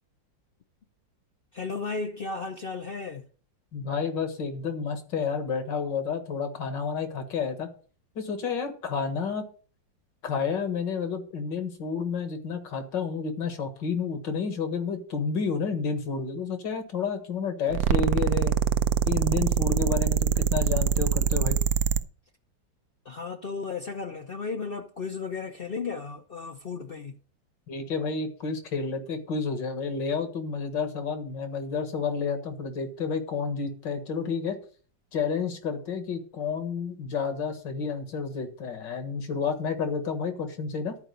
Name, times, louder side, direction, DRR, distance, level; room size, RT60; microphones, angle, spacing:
voice 1, 1.5-3.3 23.0-27.2, left 4 dB, 55° left, 0.6 m, -34 dB
voice 2, 3.7-7.7 8.2-9.5 10.2-18.5 19.1-21.6 27.7-34.6 35.1-41.0, left 5 dB, 70° left, 2.3 m, -30 dB
sound 1, 17.7-22.0, right 8 dB, 70° right, 0.9 m, -24 dB
12.0 x 5.0 x 6.7 m
omnidirectional pair, 2.0 m